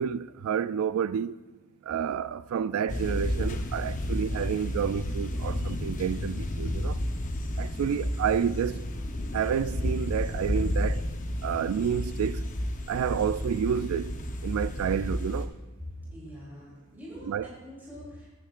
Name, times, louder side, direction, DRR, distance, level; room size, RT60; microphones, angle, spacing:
voice 1, 0.0-1.4 1.9-7.0 7.6-8.8 9.3-11.0 11.4-12.4 12.9-14.1 14.4-15.5 17.3-17.5, right 8 dB, 85° right, 0.3 m, -29 dB
sound 1, 2.9-15.5, left 1 dB, 40° left, 0.8 m, -31 dB
voice 2, 15.9-18.3, equal, 10° right, 3.0 m, -44 dB
14.5 x 9.2 x 2.5 m
head